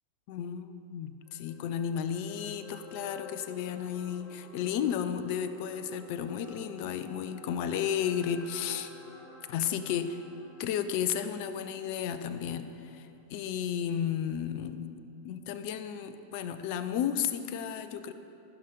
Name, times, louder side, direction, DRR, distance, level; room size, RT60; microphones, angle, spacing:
voice 1, 0.3-8.9 9.5-10.2 10.6-14.9 15.2-18.1, left 8 dB, 45° left, 11 dB, 0.5 m, -33 dB
sound 1, 1.2-13.5 13.9-14.0, left 2 dB, 20° left, 1.5 m, -52 dB
14.5 x 5.8 x 5.2 m, 2.8 s
figure-of-eight pair, 90°, 0 cm